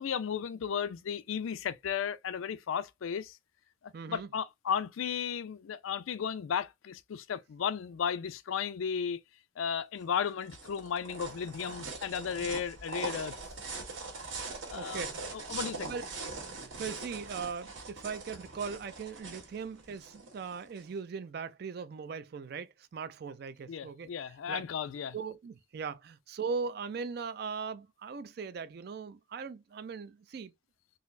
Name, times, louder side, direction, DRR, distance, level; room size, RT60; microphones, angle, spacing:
voice 1, 0.0-3.4 3.8-9.2 9.6-13.3 14.7-15.1 15.3-15.9 23.7-25.2, left 7 dB, 85° left, 0.4 m, -34 dB
voice 2, 3.9-4.3 14.7-15.3 15.8-16.0 16.6-24.1 24.5-24.6 25.1-30.5, right 5 dB, 50° right, 0.3 m, -39 dB
sound 1, 10.0-20.9, right 3 dB, 75° right, 1.4 m, -42 dB
3.9 x 2.0 x 2.4 m
head